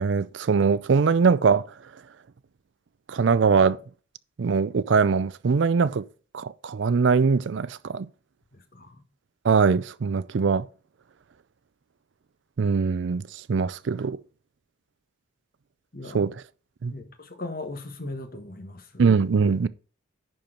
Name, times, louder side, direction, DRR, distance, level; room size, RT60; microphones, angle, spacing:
voice 1, 0.0-1.7 3.1-3.8 4.4-6.0 6.3-8.1 9.4-10.6 12.6-14.2 16.1-16.3 16.8-16.9 19.0-19.7, right 5 dB, 70° right, 0.4 m, -22 dB
voice 2, 8.5-9.0 15.9-16.3 16.9-19.1, left 2 dB, 45° left, 1.4 m, -38 dB
10.5 x 4.6 x 5.0 m
head